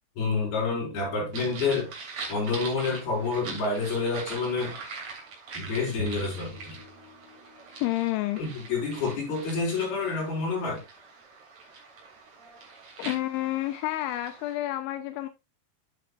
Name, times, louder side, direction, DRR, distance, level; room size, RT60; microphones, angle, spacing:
voice 1, 0.2-1.9 2.3-4.8 5.5-6.8 8.4-10.8, left 4 dB, 55° left, 6.7 m, -28 dB
sound 1, 1.3-14.5, right 4 dB, 40° right, 3.4 m, -43 dB
sound 2, 6.0-7.8, right 2 dB, 75° right, 4.1 m, -41 dB
voice 2, 7.8-8.4 13.0-15.3, left 16 dB, 90° left, 3.1 m, -29 dB
10.5 x 8.0 x 2.4 m
omnidirectional pair, 5.3 m